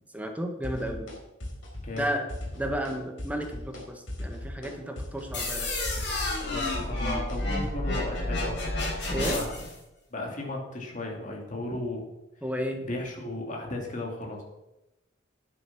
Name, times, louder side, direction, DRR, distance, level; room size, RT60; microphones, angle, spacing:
voice 1, 0.1-1.1 2.0-2.2 2.5-5.7 9.1-9.4 12.4-12.9, equal, 5° right, 3 dB, 1.4 m, -32 dB
sound 1, 0.6-1.2 1.4-2.0 2.3-2.9 3.2-3.8 4.1-7.7, left 1 dB, 80° left, 4.2 m, -38 dB
sound 2, 5.3-9.7, left 2 dB, 60° left, 4.7 m, -30 dB
voice 2, 6.5-8.6 9.1-9.6 10.1-12.0 12.8-14.4, left 2 dB, 40° left, 0 dB, 2.6 m, -35 dB
10.0 x 9.4 x 6.0 m, 0.95 s
head